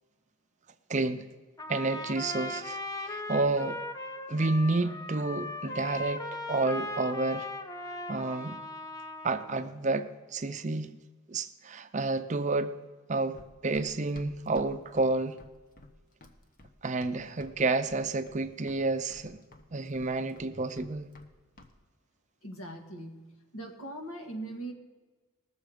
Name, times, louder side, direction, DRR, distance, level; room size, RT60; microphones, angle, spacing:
voice 1, 0.9-1.2 1.7-3.8 4.3-6.2 6.5-7.5 8.1-8.6 9.2-11.0 11.3-12.7 13.1-15.4 16.8-19.4 19.7-21.1, right 3 dB, 35° right, 9 dB, 0.5 m, -30 dB
Trumpet, 1.6-9.7, left 2 dB, 15° left, 0.6 m, -38 dB
Run, 13.3-17.6 17.8-18.4 18.7-21.3 21.6-21.7, left 1 dB, 40° left, 1.0 m, -52 dB
voice 2, 22.4-24.7, right 1 dB, 80° left, 3 dB, 1.8 m, -41 dB
19.5 x 7.1 x 5.0 m, 1.3 s
head